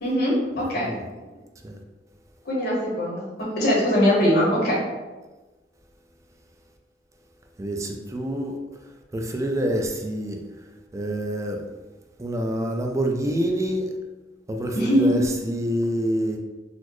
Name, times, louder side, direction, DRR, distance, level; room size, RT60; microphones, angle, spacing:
voice 1, 0.0-0.9 2.5-4.8 14.8-15.1, equal, 60° left, -4 dB, 1.0 m, -22 dB
voice 2, 7.6-10.6 10.9-11.7 12.2-13.9 14.5-16.4, equal, 15° right, 2 dB, 0.3 m, -27 dB
4.0 x 2.0 x 3.0 m, 1.2 s
head